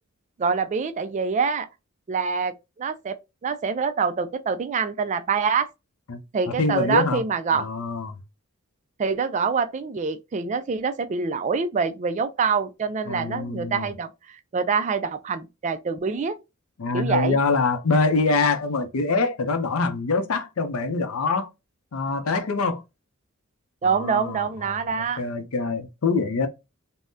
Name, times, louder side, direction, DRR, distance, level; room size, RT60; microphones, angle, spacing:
voice 1, 0.4-1.7 2.1-3.2 3.4-5.7 6.3-7.7 9.0-16.4 16.9-17.4 23.8-25.2, right 5 dB, 35° right, 0.3 m, -25 dB
voice 2, 6.6-7.2 7.5-8.2 13.1-13.9 16.8-21.5 21.9-22.8 23.8-26.5, left 3 dB, 75° left, 0.6 m, -25 dB
3.5 x 2.1 x 2.6 m
head